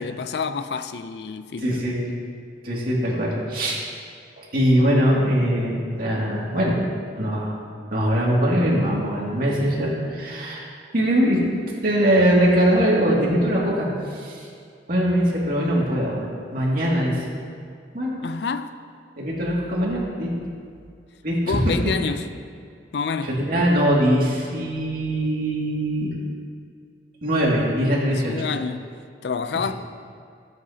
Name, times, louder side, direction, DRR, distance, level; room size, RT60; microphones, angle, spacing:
voice 1, 0.0-1.8 18.2-18.7 21.5-22.3 22.9-23.3 28.1-28.9 29.2-29.7, left 5 dB, 65° left, 0.4 m, -28 dB
voice 2, 1.6-2.0 2.6-3.8 4.5-6.8 7.2-7.6 7.9-10.7 10.9-11.4 11.8-14.5 14.9-17.3 17.9-18.2 19.2-20.3 21.2-21.8 23.2-26.1 27.2-28.4, equal, 55° right, 2.3 m, -21 dB
16.0 x 8.0 x 2.8 m
head